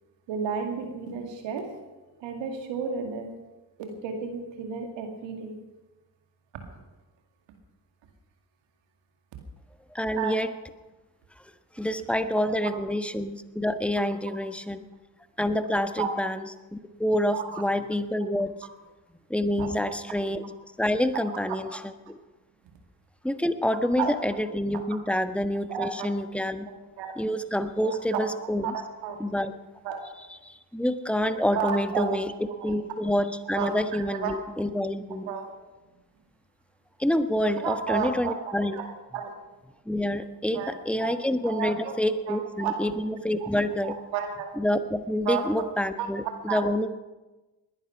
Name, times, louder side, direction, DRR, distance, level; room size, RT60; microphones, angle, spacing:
voice 1, 0.3-1.7 2.2-3.3 3.8-5.5 10.1-10.4 16.0-16.1 17.3-17.6 19.6-20.0 21.5-21.6 24.0-24.1 25.7-26.1 26.7-27.1 27.8-29.2 29.8-30.0 31.5-32.1 32.6-32.8 33.1-33.2 33.5-34.4 35.3-35.5 37.6-39.3 40.5-41.1 41.4-42.0 42.3-42.7 43.4-43.5 43.8-44.5 45.3-45.4 46.0-46.1 46.5-46.6, right 7 dB, 85° right, 5 dB, 2.2 m, -32 dB
voice 2, 9.9-10.5 11.7-14.8 15.4-16.4 16.7-18.5 19.3-20.4 20.8-21.8 22.1-22.2 23.2-26.7 27.2-28.8 29.2-29.5 30.4-32.3 32.6-35.3 37.0-38.8 39.9-44.0 44.6-46.9, left 1 dB, 5° left, 10 dB, 1.3 m, -27 dB
20.0 x 11.0 x 5.8 m, 1.1 s
hypercardioid pair, 40°, 43 cm